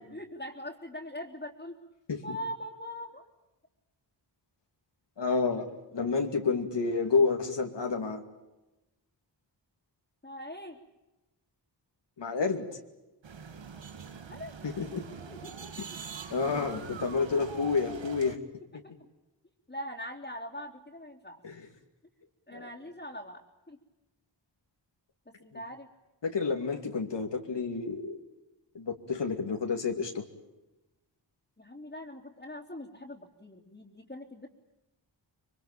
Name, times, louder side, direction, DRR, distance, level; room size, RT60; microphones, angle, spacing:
voice 1, 0.0-1.8 2.2-3.2 10.2-10.8 14.3-14.6 15.2-15.7 16.4-16.8 19.7-21.4 22.5-23.8 25.3-25.9 31.6-34.5, equal, 20° left, -3 dB, 3.3 m, -42 dB
voice 2, 5.2-8.2 12.2-12.7 14.8-15.0 16.3-18.4 21.4-21.6 22.5-22.7 26.2-28.2 28.7-30.2, left 4 dB, 70° left, 3 dB, 2.7 m, -29 dB
sound 1, 13.2-18.4, right 6 dB, 80° right, 2.2 m, -44 dB
25.5 x 24.0 x 8.9 m, 0.99 s
wide cardioid pair, 90°, 44 cm